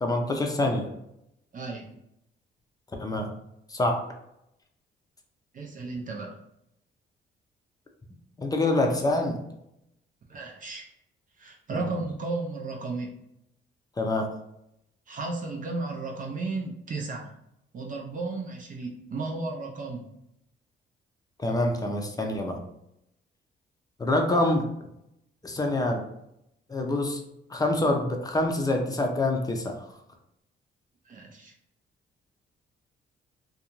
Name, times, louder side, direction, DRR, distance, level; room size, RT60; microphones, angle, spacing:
voice 1, 0.0-0.9 3.0-3.3 3.7-4.1 8.4-9.4 11.7-11.9 14.0-14.3 21.4-22.6 24.0-24.7 25.4-26.0 26.7-27.2 27.5-29.7, left 2 dB, 20° left, 2 dB, 0.5 m, -26 dB
voice 2, 1.5-1.9 5.5-6.4 10.3-10.8 11.4-13.2 15.1-17.3 17.7-20.0 31.1-31.5, right 3 dB, 45° right, -1 dB, 0.5 m, -34 dB
2.5 x 2.2 x 3.0 m, 0.81 s
cardioid pair, 90°, 20 cm